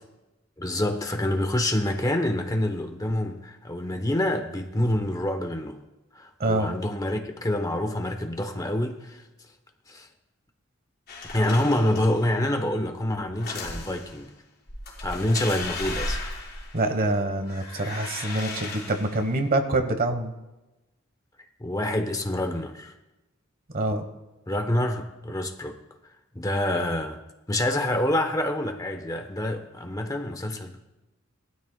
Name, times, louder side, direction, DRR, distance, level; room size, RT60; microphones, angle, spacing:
voice 1, 0.6-5.8 6.1-9.2 9.9-10.1 11.3-14.3 15.0-16.2 21.6-22.9 24.5-25.8 26.3-27.2 27.5-30.9, left 1 dB, 20° left, 6 dB, 0.9 m, -27 dB
voice 2, 6.4-6.7 16.7-20.3 23.7-24.0, right 2 dB, 50° right, 7 dB, 1.2 m, -25 dB
sound 1, 11.1-12.2 13.3-14.2 14.7-17.1 17.4-19.3, left 2 dB, 55° left, 4.0 m, -35 dB
19.0 x 12.5 x 2.3 m, 1.0 s
head